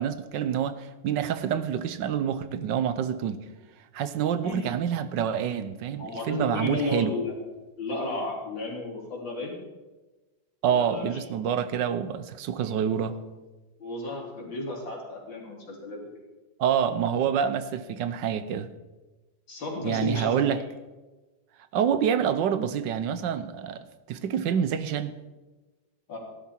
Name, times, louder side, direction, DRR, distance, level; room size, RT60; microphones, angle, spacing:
voice 1, 0.0-3.4 3.9-7.2 10.6-13.2 16.6-18.7 19.8-20.6 21.7-25.1, right 8 dB, 75° right, 1.4 m, -27 dB
voice 2, 6.0-7.3 7.8-9.6 10.7-11.1 12.6-12.8 13.1-13.2 13.8-16.0 19.5-20.6 26.1-26.2, left 2 dB, 85° left, 4.1 m, -33 dB
15.0 x 12.0 x 4.4 m
omnidirectional pair, 2.0 m